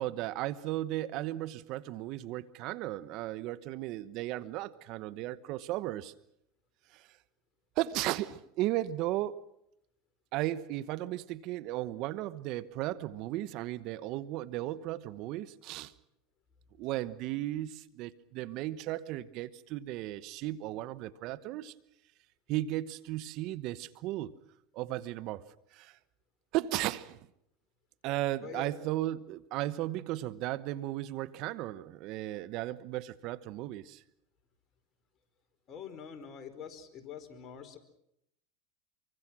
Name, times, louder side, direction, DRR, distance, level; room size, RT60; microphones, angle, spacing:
voice 1, 0.0-6.1 6.9-7.1 7.8-9.4 10.3-15.9 16.8-21.7 22.5-24.3 24.7-25.4 25.7-26.0 26.5-27.2 28.0-34.0, right 15 dB, 55° right, 16 dB, 1.1 m, -35 dB
voice 2, 35.7-37.8, left 7 dB, 40° left, 8 dB, 4.5 m, -45 dB
26.0 x 24.0 x 6.2 m, 0.78 s
hypercardioid pair, 100°, 0 cm